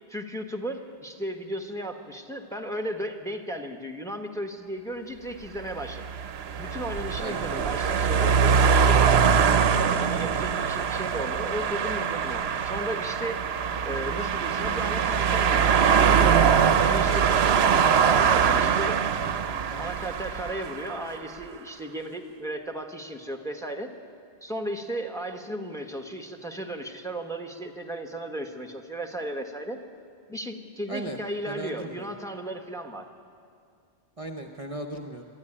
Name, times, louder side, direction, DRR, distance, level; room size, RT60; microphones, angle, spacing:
voice 1, 0.1-6.0 6.6-9.6 10.0-13.4 13.8-17.5 18.0-19.0 19.8-23.9 24.4-29.8 30.3-33.1, right 1 dB, 5° left, 4 dB, 1.3 m, -35 dB
sound 1, 5.7-21.1, right 7 dB, 65° right, 1.0 m, -23 dB
voice 2, 31.5-32.1 34.2-35.2, right 2 dB, 35° right, 4 dB, 0.9 m, -36 dB
23.5 x 13.0 x 9.9 m, 2.3 s
omnidirectional pair, 1.1 m